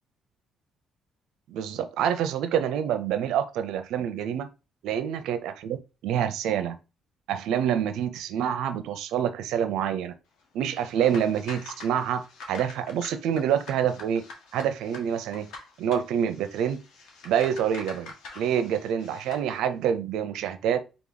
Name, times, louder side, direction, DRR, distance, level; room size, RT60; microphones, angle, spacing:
voice 1, 1.5-4.5 4.8-5.8 6.0-6.8 7.3-10.1 10.5-14.2 14.5-15.5 15.8-16.8 17.2-20.8, right 9 dB, 90° right, 0.6 m, -27 dB
sound 1, 10.7-19.5, left 3 dB, 85° left, 1.3 m, -45 dB
3.8 x 3.0 x 3.9 m
cardioid pair, 90°, 0 cm